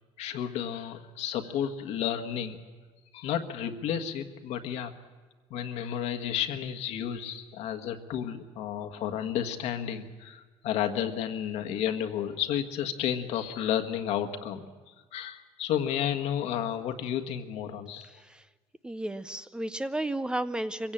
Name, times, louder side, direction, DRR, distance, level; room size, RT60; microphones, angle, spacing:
voice 1, 0.2-2.6 3.1-4.9 5.5-14.7 15.1-18.1, left 9 dB, 75° left, 7 dB, 1.6 m, -32 dB
voice 2, 18.8-20.9, right 1 dB, 10° right, 13 dB, 0.6 m, -33 dB
24.0 x 16.0 x 8.8 m, 1.4 s
cardioid pair, 135°, 11 cm